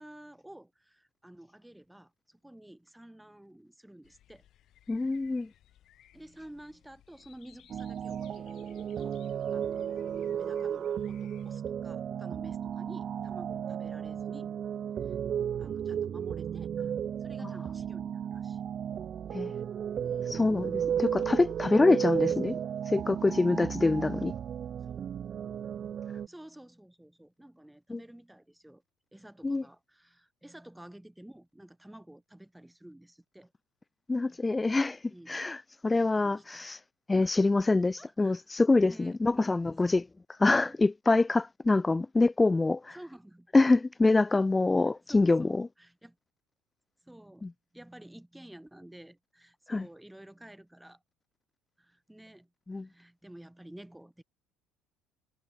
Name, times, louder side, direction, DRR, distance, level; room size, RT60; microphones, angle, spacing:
voice 1, 0.0-4.4 6.1-9.2 9.5-14.5 15.0-15.2 15.6-16.9 17.2-18.7 20.0-20.6 22.0-22.6 24.8-25.1 26.3-28.8 29.1-33.5 34.2-34.4 35.1-35.4 35.9-36.7 37.2-37.6 38.0-38.4 38.8-40.0 40.5-40.8 42.9-43.5 44.3-44.4 45.1-46.2 47.0-47.5 47.7-51.0 51.8-52.5 52.8-54.2, right 1 dB, 5° right, 2.8 m, -51 dB
sound 1, 4.0-11.6, left 12 dB, 55° left, 7.1 m, -62 dB
voice 2, 4.9-5.5 19.3-19.5 20.3-22.6 22.8-24.3 27.9-28.0 29.4-29.6 34.1-36.8 37.1-40.1 40.4-43.0 43.5-45.7 47.4-47.5 49.7-49.9 52.7-52.9, left 3 dB, 15° left, 0.5 m, -25 dB
sound 2, 7.7-26.3, right 9 dB, 40° right, 0.7 m, -34 dB
cardioid pair, 115°, 0 cm